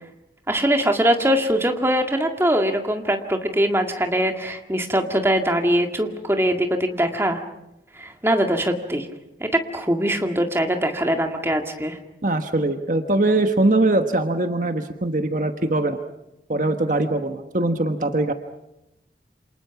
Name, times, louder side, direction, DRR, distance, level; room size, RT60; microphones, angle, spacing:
voice 1, 0.5-7.4 8.0-9.1 9.4-12.0, equal, 15° right, 4 dB, 2.0 m, -22 dB
voice 2, 12.2-16.0 16.5-18.3, right 2 dB, 45° right, 6 dB, 1.3 m, -21 dB
28.0 x 27.5 x 6.0 m, 0.90 s
head